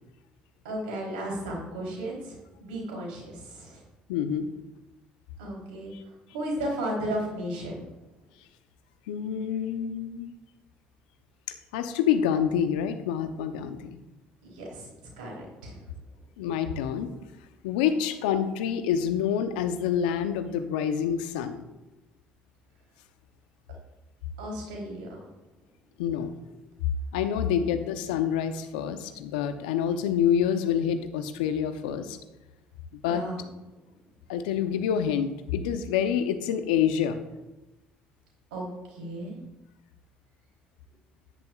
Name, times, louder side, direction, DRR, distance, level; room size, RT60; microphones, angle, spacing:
voice 1, 0.6-3.8 5.4-5.9 6.3-7.8 14.4-14.9 15.2-15.8 24.4-25.2 27.4-27.7 33.0-33.5 38.5-39.4, right 1 dB, 80° right, -2 dB, 3.8 m, -35 dB
voice 2, 4.1-4.5 9.1-10.3 11.7-14.0 16.4-17.1 17.6-21.6 26.0-26.3 27.1-32.2 32.9-33.2 34.3-37.2, left 8 dB, 80° left, 9 dB, 0.8 m, -27 dB
13.5 x 10.5 x 2.5 m, 1.0 s
hypercardioid pair, 55°, 5 cm